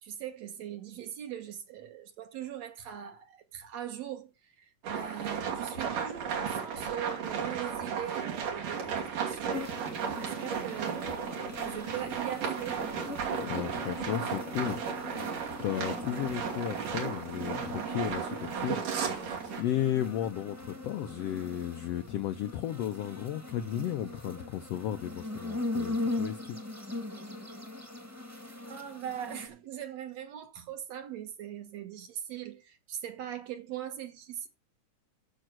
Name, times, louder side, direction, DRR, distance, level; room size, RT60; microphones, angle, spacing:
voice 1, 0.0-9.7 10.0-11.1 11.6-12.8 28.7-34.5, right 10 dB, 60° right, 2.3 m, -40 dB
sound 1, 4.8-19.6, right 7 dB, 85° right, 4.2 m, -35 dB
sound 2, 9.5-29.5, left 2 dB, 10° right, 1.1 m, -40 dB
voice 2, 13.4-15.3 15.6-26.6, left 11 dB, 80° left, 1.4 m, -34 dB
9.0 x 7.4 x 6.2 m
omnidirectional pair, 3.7 m